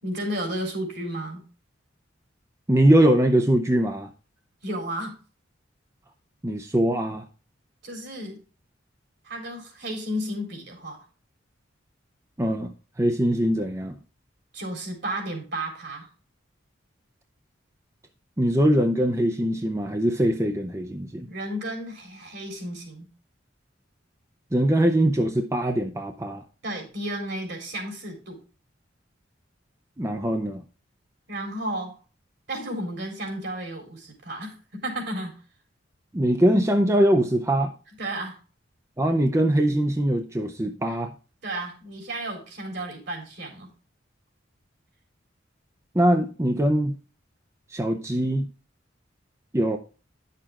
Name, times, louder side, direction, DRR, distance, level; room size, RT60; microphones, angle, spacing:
voice 1, 0.0-1.4 4.6-5.2 7.8-8.4 9.2-11.0 14.5-16.1 21.3-23.1 26.6-28.4 31.3-32.0 32.5-35.4 38.0-38.4 40.9-41.0 41.4-43.7, right 1 dB, 60° right, 2 dB, 3.9 m, -33 dB
voice 2, 2.7-4.1 6.4-7.2 12.4-13.9 18.4-21.3 24.5-26.4 30.0-30.6 36.1-37.7 39.0-41.1 45.9-47.0 47.7-48.5 49.5-49.8, right 1 dB, 15° right, 5 dB, 0.7 m, -22 dB
10.5 x 6.7 x 3.6 m, 0.35 s
head